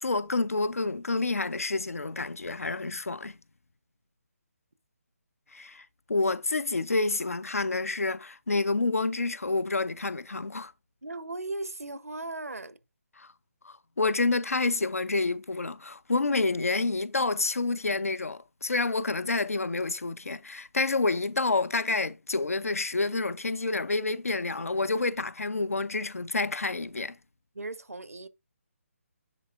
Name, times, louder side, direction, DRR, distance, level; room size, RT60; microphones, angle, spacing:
voice 1, 0.0-3.4 5.5-10.7 13.2-13.3 13.6-27.2, left 3 dB, 75° left, 0.5 m, -28 dB
voice 2, 11.0-12.8 27.5-28.3, right 2 dB, 85° right, 0.7 m, -37 dB
9.9 x 4.1 x 2.4 m
figure-of-eight pair, 145°, 8 cm